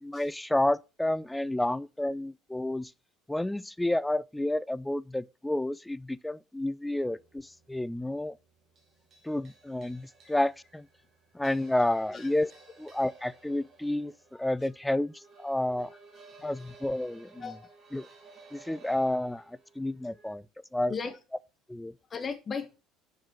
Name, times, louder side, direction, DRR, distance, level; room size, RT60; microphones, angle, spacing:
voice 1, 0.0-2.9 3.3-8.4 9.2-10.9 11.3-12.5 12.8-15.1 15.4-15.9 16.4-17.5 17.9-18.1 18.5-20.4 20.7-20.9 21.7-21.9, left 1 dB, 5° left, 0.4 m, -30 dB
sound 1, 7.0-20.3, right 3 dB, 40° right, 2.7 m, -56 dB
voice 2, 17.4-17.7 19.3-19.4 20.9-21.2 22.1-22.8, left 5 dB, 30° left, 1.1 m, -36 dB
7.4 x 4.7 x 4.5 m
figure-of-eight pair, 60°, 0 cm